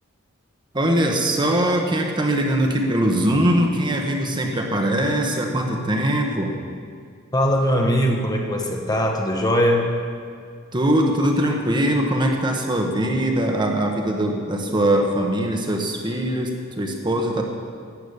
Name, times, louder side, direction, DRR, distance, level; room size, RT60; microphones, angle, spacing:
voice 1, 0.7-6.5 10.7-17.4, right 1 dB, 20° right, 2 dB, 1.2 m, -21 dB
voice 2, 7.3-9.9, equal, 20° left, 2 dB, 1.2 m, -20 dB
12.0 x 8.0 x 8.2 m, 2.1 s
head